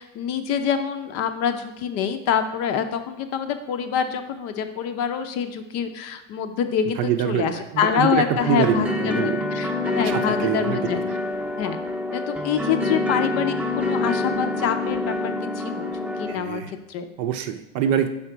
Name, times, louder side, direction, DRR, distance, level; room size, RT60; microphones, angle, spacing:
voice 1, 0.0-11.0 11.6-11.8 12.1-17.1, left 8 dB, 40° left, 8 dB, 0.6 m, -26 dB
voice 2, 7.0-9.4 10.0-10.8 16.3-16.7 17.2-18.1, right 9 dB, 50° right, 8 dB, 0.7 m, -25 dB
sound 1, 8.4-16.3, left 2 dB, 5° right, 0.7 m, -26 dB
5.7 x 3.9 x 4.5 m, 0.95 s
hypercardioid pair, 110°, 38 cm